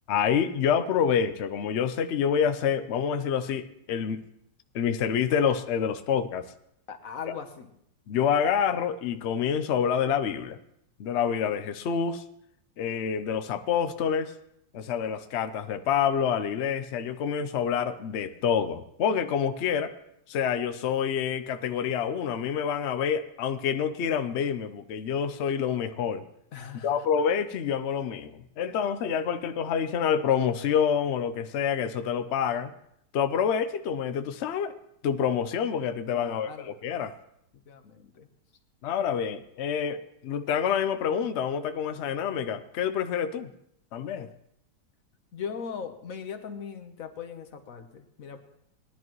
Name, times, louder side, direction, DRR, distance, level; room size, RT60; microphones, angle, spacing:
voice 1, 0.1-4.2 4.7-6.5 7.3-7.4 8.1-10.6 11.0-12.2 12.8-14.3 14.7-19.9 20.3-26.2 26.8-32.7 33.1-34.7 35.0-37.1 38.8-43.5 43.9-44.3, left 7 dB, 75° left, 9 dB, 0.6 m, -27 dB
voice 2, 6.9-7.7 26.5-27.0 36.1-36.7 37.7-38.3 45.3-48.4, left 6 dB, 55° left, 6 dB, 1.3 m, -39 dB
19.0 x 11.0 x 3.1 m, 0.75 s
omnidirectional pair, 1.9 m